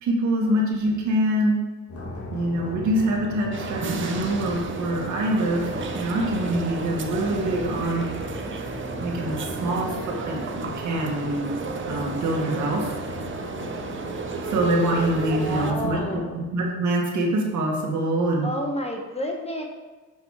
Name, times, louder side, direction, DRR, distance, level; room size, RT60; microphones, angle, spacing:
voice 1, 0.0-1.6 2.3-8.1 9.0-11.5 11.9-12.9 14.5-18.5, right 1 dB, 70° right, -1 dB, 1.9 m, -25 dB
sound 1, 1.9-16.2, left 2 dB, 50° left, 1.9 m, -36 dB
voice 2, 2.0-2.4 6.5-6.7 13.6-13.8 15.4-16.3 18.4-19.6, equal, 20° left, 2 dB, 1.3 m, -31 dB
sound 2, 3.5-15.7, right 5 dB, 40° right, 0.9 m, -33 dB
7.5 x 5.5 x 4.9 m, 1.3 s
cardioid pair, 90°, 30 cm